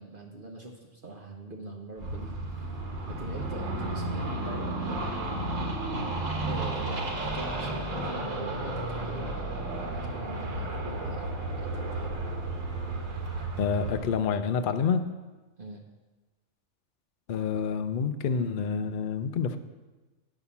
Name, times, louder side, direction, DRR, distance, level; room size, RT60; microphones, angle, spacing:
voice 1, 0.0-2.3 3.1-5.0 5.2-5.7 6.4-9.4 9.9-11.3 11.6-12.1 15.6-15.8, right 2 dB, 45° right, 1 dB, 0.9 m, -43 dB
sound 1, 2.0-14.1, right 2 dB, 70° right, 1.6 m, -33 dB
voice 2, 13.5-15.0 17.3-19.6, left 6 dB, 60° left, 9 dB, 0.6 m, -28 dB
9.1 x 5.6 x 7.0 m, 1.2 s
omnidirectional pair, 1.4 m